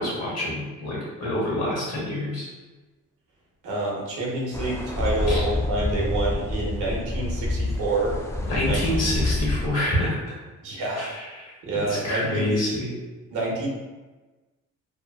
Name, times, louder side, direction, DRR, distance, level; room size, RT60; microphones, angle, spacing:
voice 1, 0.0-2.5 5.3-5.4 8.5-10.2 11.0-11.1 11.4-11.5 11.9-12.9, left 1 dB, 60° left, -5 dB, 1.2 m, -27 dB
voice 2, 3.6-8.2 8.7-8.8 10.6-11.1 11.6-12.5 13.3-13.7, right 2 dB, 80° right, -3 dB, 0.8 m, -27 dB
sound 1, 4.5-9.7, left 2 dB, 10° left, 0.3 m, -27 dB
2.8 x 2.3 x 2.2 m, 1.2 s
cardioid pair, 90°, 30 cm